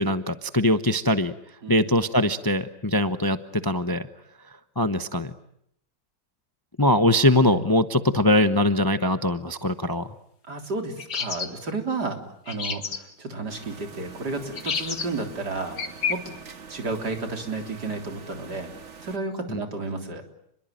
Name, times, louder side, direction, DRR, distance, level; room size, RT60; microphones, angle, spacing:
voice 1, 0.0-1.3 1.7-4.1 4.8-5.3 6.8-10.1 19.5-19.6, left 1 dB, 15° left, 10 dB, 0.8 m, -22 dB
voice 2, 10.5-12.2 12.5-15.8 16.1-16.2 16.7-18.7 19.0-20.2, right 3 dB, 70° right, 4 dB, 4.2 m, -32 dB
sound 1, 11.0-11.5 12.5-13.0 14.6-15.1 15.8-16.2, left 6 dB, 65° left, 2.5 m, -29 dB
sound 2, 13.5-19.2, right 5 dB, 45° right, 1.7 m, -44 dB
29.5 x 22.0 x 9.1 m, 0.74 s
omnidirectional pair, 1.9 m